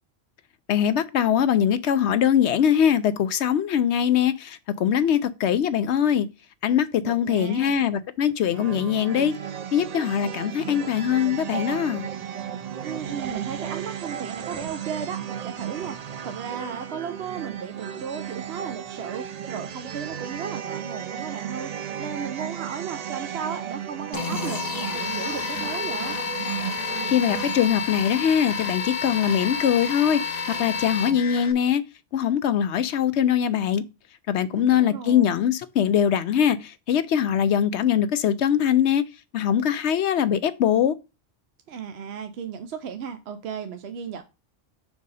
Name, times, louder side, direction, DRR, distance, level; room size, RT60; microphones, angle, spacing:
voice 1, 0.7-6.3 6.6-9.3 9.7-12.1 27.1-31.8 32.1-33.8 34.3-39.0 39.3-40.9, left 9 dB, 70° left, 0.9 m, -22 dB
voice 2, 7.0-7.8 12.8-16.0 16.2-26.2 34.5-35.2 41.7-44.2, right 7 dB, 65° right, 0.9 m, -35 dB
Ambient Acoustic Loop A, 8.5-27.7, right 9 dB, 80° right, 0.3 m, -34 dB
sound 1, 24.1-31.5, left 5 dB, 45° left, 0.6 m, -30 dB
6.3 x 4.7 x 4.1 m
omnidirectional pair, 1.3 m